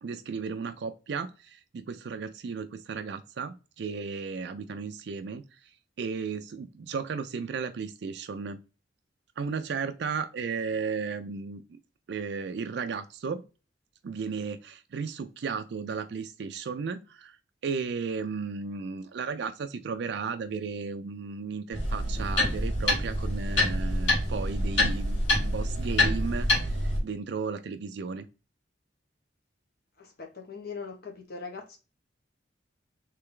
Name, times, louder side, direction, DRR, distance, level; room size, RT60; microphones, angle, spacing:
voice 1, 0.0-5.4 6.0-8.6 9.4-11.6 12.1-13.4 14.0-17.4 17.6-28.3, right 5 dB, 65° right, 0.4 m, -34 dB
sound 1, 21.7-27.0, left 1 dB, 80° left, 2.1 m, -26 dB
voice 2, 30.0-31.8, left 5 dB, 55° left, 1.0 m, -41 dB
3.3 x 3.3 x 3.7 m
head